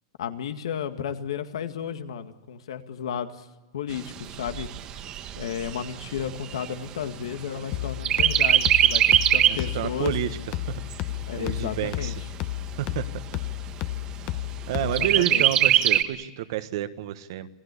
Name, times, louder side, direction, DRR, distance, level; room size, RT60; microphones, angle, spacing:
voice 1, 0.2-3.5 3.7-4.7 5.4-10.1 11.3-12.1 14.8-15.4, left 8 dB, 90° left, 8 dB, 2.0 m, -33 dB
Chirp tweet, 3.9-7.7 8.0-9.7 10.2-10.3 10.6-11.6 12.2-12.3 12.6-12.7 13.2-13.7 15.0-16.0, right 11 dB, 30° right, 1.2 m, -22 dB
sound 1, 7.7-15.2, left 15 dB, 35° left, 1.0 m, -33 dB
voice 2, 9.5-10.4 10.7-10.8 11.4-12.1 12.8-13.0 14.7-17.5, right 12 dB, 55° right, 11 dB, 1.4 m, -29 dB
27.5 x 17.5 x 8.4 m, 1.1 s
supercardioid pair, 165°, 3 cm